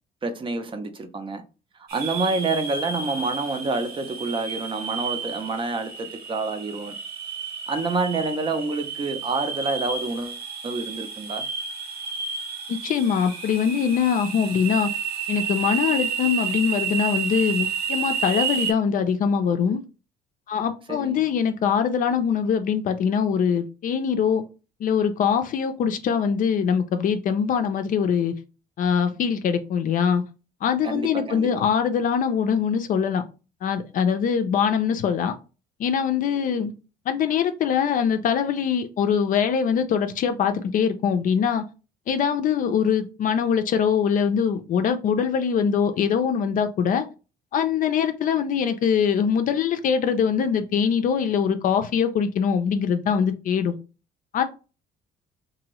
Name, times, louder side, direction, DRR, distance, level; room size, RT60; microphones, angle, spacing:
voice 1, 0.2-1.4 1.8-7.0 7.7-11.4 20.9-21.3 30.8-31.7, right 3 dB, 30° right, 0.6 m, -28 dB
sound 1, 1.9-18.7, right 6 dB, 65° right, 0.8 m, -31 dB
voice 2, 12.7-14.9 15.3-19.8 20.5-24.4 24.8-28.3 28.8-30.2 30.6-33.2 33.6-35.3 35.8-36.7 37.1-41.6 42.1-47.1 47.5-53.8 54.3-54.4, left 7 dB, 50° left, 0.5 m, -23 dB
2.8 x 2.6 x 3.0 m
cardioid pair, 110°, 17 cm